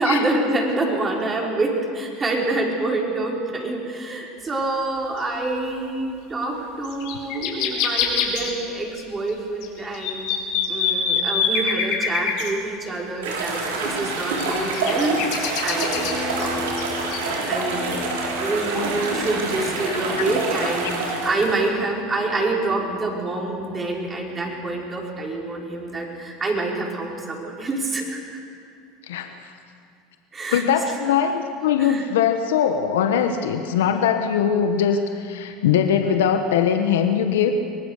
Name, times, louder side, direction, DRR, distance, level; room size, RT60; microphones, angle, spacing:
voice 1, 0.0-10.3 10.7-16.8 17.5-28.4 30.3-31.0 31.8-32.0, right 2 dB, 25° right, -2 dB, 5.5 m, -27 dB
sound 1, 5.2-5.3 6.4-6.5 6.8-9.0 9.3-9.4 9.6-12.5 13.8-16.4 16.8-16.9 17.1-17.2, left 7 dB, 70° left, 4.0 m, -25 dB
sound 2, 13.2-21.7, right 3 dB, 90° right, 4.3 m, -27 dB
sound 3, 15.9-26.3, left 3 dB, 5° left, 5.6 m, -37 dB
voice 2, 19.9-20.3 20.6-20.7 29.1-29.4 30.5-37.5, left 8 dB, 85° left, 6 dB, 1.3 m, -21 dB
24.5 x 19.0 x 6.7 m, 2.3 s
hypercardioid pair, 95°, 0 cm